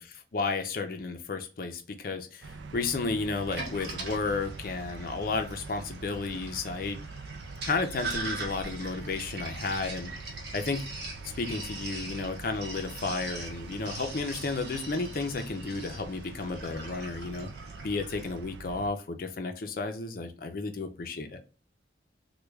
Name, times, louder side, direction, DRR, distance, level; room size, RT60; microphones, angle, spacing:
voice 1, 0.3-7.0 7.7-10.1 10.5-10.8 11.4-17.5 17.8-21.4, left 3 dB, 50° left, 7 dB, 0.5 m, -32 dB
sound 1, 2.4-18.9, right 3 dB, 85° right, 0.4 m, -44 dB
Sink (filling or washing), 3.3-18.4, right 2 dB, 65° right, 0.9 m, -42 dB
3.2 x 2.2 x 3.4 m, 0.34 s
head